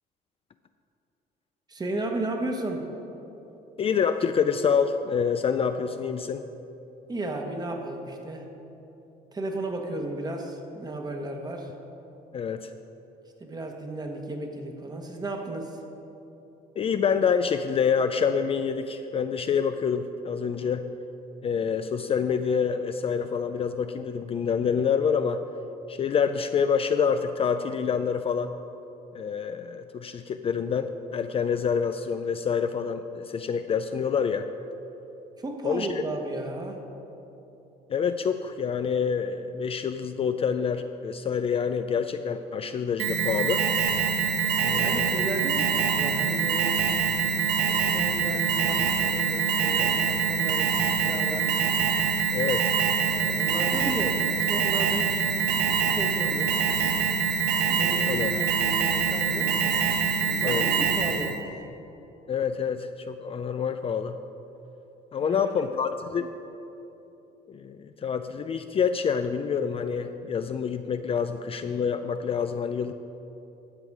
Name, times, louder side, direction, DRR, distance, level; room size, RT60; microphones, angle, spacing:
voice 1, 1.7-2.9 7.1-8.5 9.3-11.7 13.4-15.8 35.4-36.9 44.7-46.8 47.7-51.7 53.1-57.0 57.7-59.6 60.2-61.6 65.2-65.8, right 2 dB, 25° right, 3 dB, 1.3 m, -34 dB
voice 2, 3.8-6.4 12.3-12.7 16.8-20.9 21.4-25.4 25.9-28.5 29.1-34.5 35.6-35.9 37.9-43.7 44.6-45.2 52.3-52.7 58.1-58.4 60.4-60.6 62.3-64.2 65.1-66.3 67.5-72.9, left 6 dB, 35° left, 8 dB, 0.4 m, -27 dB
Alarm, 43.0-61.4, right 6 dB, 80° right, 0.9 m, -25 dB
13.0 x 7.3 x 4.8 m, 3.0 s
cardioid pair, 110°, 17 cm